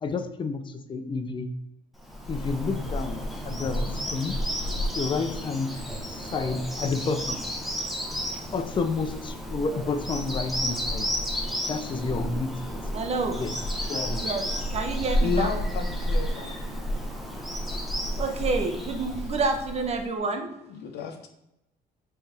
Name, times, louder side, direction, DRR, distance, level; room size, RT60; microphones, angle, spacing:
voice 1, 0.0-1.5 2.3-4.4 4.9-5.8 6.3-7.4 8.5-11.1 11.7-12.8 13.3-13.5 13.8-14.2, left 4 dB, 30° left, 8 dB, 0.5 m, -30 dB
Bird vocalization bird call bird song, 2.0-20.0, equal, ahead, 0.8 m, -31 dB
voice 2, 12.9-13.4 14.2-15.6 16.9-17.0 17.7-20.5, right 3 dB, 40° right, 4 dB, 0.8 m, -29 dB
voice 3, 15.2-16.6 20.7-21.3, left 5 dB, 75° left, 5 dB, 0.7 m, -31 dB
4.6 x 3.3 x 3.3 m, 0.84 s
cardioid pair, 110°, 17 cm